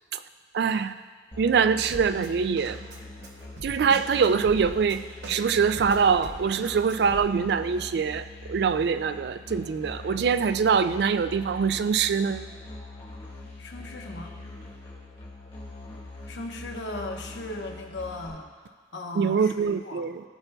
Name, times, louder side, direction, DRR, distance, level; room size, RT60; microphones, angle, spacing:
voice 1, 0.5-0.9 1.4-2.8 3.6-12.5 19.2-20.2, right 6 dB, 65° right, 12 dB, 0.3 m, -24 dB
Musical instrument, 1.3-18.3, left 2 dB, 30° left, 1.4 m, -43 dB
Drum kit, 1.9-7.3, right 1 dB, 85° right, 0.9 m, -42 dB
voice 2, 13.6-14.4 16.3-20.1, left 2 dB, 85° left, 2 dB, 1.0 m, -37 dB
16.0 x 5.7 x 2.3 m, 1.5 s
head